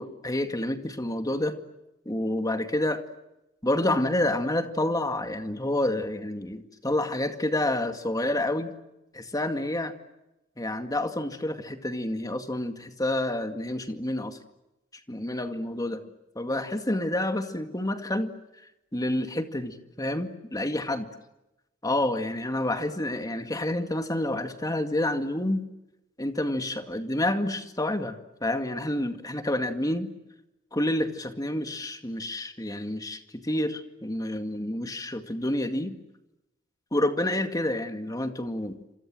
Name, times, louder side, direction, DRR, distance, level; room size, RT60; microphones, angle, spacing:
voice 1, 0.0-1.6 2.1-3.0 3.6-8.7 9.1-9.9 10.6-14.4 15.1-16.0 16.4-18.3 18.9-21.0 21.8-25.7 26.2-30.1 30.7-36.0 36.9-38.8, left 1 dB, 20° left, 7 dB, 2.1 m, -28 dB
29.0 x 26.5 x 7.7 m, 0.96 s
head